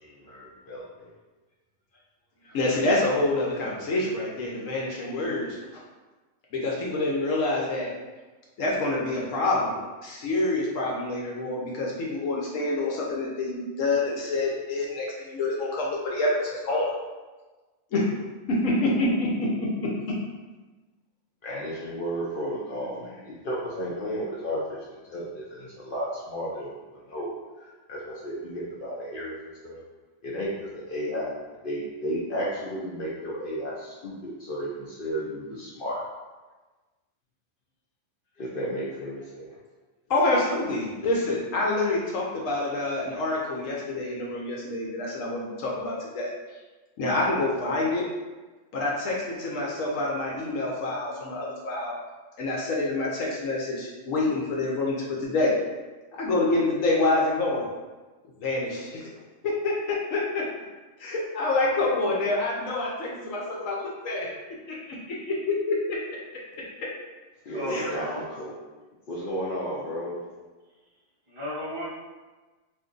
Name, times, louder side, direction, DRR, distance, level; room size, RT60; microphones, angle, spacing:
voice 1, 0.0-1.1 2.4-2.6 21.4-26.7 27.1-27.3 27.6-29.8 30.2-31.3 31.6-36.0 38.4-39.6 67.5-68.6 69.1-70.2, equal, 60° left, -5 dB, 0.5 m, -33 dB
voice 2, 2.5-5.6 6.5-7.9 8.6-9.8 10.0-16.9 17.9-18.1 18.6-19.3 40.1-46.3 47.0-48.1 48.7-52.0 52.4-55.5 56.1-57.6 58.4-59.1 59.4-60.4 61.0-64.3 64.7-64.8 65.3-65.7 67.7-67.8, left 2 dB, 75° left, -4 dB, 1.0 m, -27 dB
voice 3, 67.5-68.2 71.3-71.9, equal, 30° right, -10 dB, 0.5 m, -33 dB
2.5 x 2.5 x 3.7 m, 1.2 s
omnidirectional pair, 1.4 m